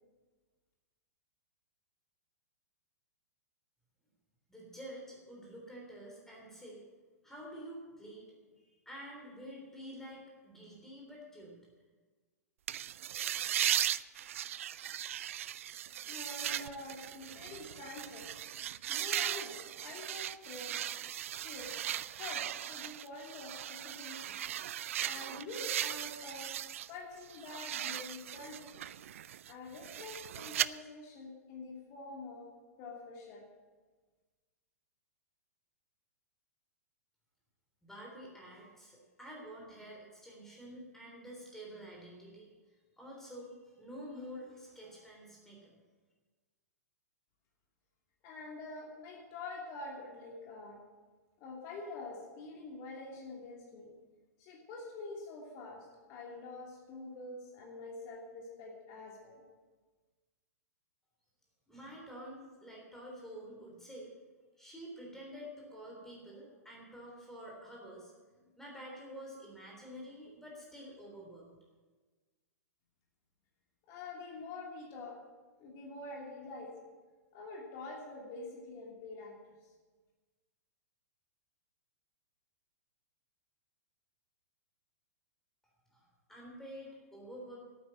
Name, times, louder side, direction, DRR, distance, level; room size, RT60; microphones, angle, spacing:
voice 1, 4.5-6.8 7.2-8.3 8.5-11.6 37.8-42.5 43.0-45.7 61.7-64.1 64.6-71.5 85.9-87.6, equal, 5° left, -2 dB, 3.4 m, -49 dB
sound 1, 12.7-26.9 27.2-30.7, right 11 dB, 55° right, 0.4 m, -38 dB
voice 2, 16.1-18.3 18.9-20.8 21.4-21.8 22.1-24.4 25.0-26.5 26.9-28.8 29.5-32.5 32.8-33.4 48.2-50.8 51.4-53.9 54.4-59.4 73.9-75.2 75.6-76.7 77.3-79.3 79.6-79.7, left 3 dB, 35° left, -1 dB, 2.8 m, -46 dB
11.5 x 9.4 x 7.5 m, 1.3 s
figure-of-eight pair, 105°, 9 cm